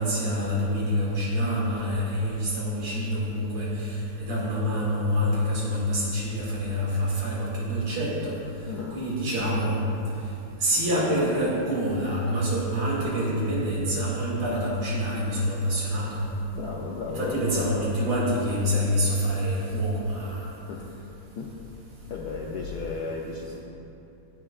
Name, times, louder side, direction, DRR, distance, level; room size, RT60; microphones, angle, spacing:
voice 1, 0.0-8.3 8.9-9.8 10.6-16.2 17.1-20.5, equal, 80° right, -6 dB, 3.2 m, -26 dB
voice 2, 8.7-9.0 16.5-17.8 20.7-20.9 21.4-21.5 22.1-23.6, left 4 dB, 70° left, -2 dB, 1.0 m, -34 dB
16.0 x 7.9 x 2.4 m, 2.9 s
omnidirectional pair, 2.4 m